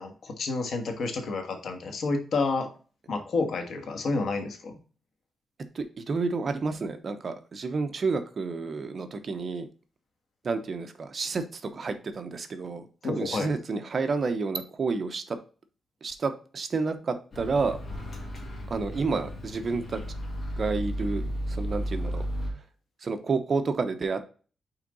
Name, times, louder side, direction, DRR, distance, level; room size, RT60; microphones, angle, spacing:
voice 1, 0.0-2.7 3.1-4.7 13.0-13.5, left 3 dB, 60° left, 5 dB, 1.4 m, -29 dB
voice 2, 5.7-9.7 10.4-15.4 16.0-17.8 18.7-20.0 20.6-22.2 23.0-24.2, right 4 dB, 40° right, 8 dB, 0.8 m, -30 dB
Microwave oven, 17.3-22.5, equal, 40° left, 2.4 m, -34 dB
5.8 x 4.5 x 3.9 m, 0.38 s
wide cardioid pair, 150°, 0 cm